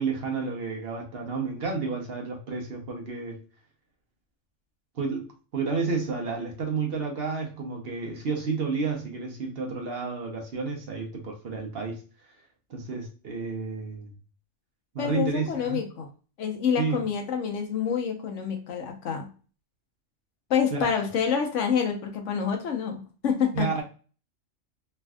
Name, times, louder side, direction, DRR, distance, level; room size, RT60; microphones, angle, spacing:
voice 1, 0.0-3.4 5.0-12.0 12.7-14.1 14.9-15.8 16.8-17.0 20.7-20.9 23.5-23.8, right 4 dB, 55° right, 0.9 m, -31 dB
voice 2, 15.0-16.1 16.4-19.3 20.5-23.8, left 7 dB, 75° left, 1.1 m, -27 dB
3.2 x 2.5 x 2.2 m
omnidirectional pair, 1.3 m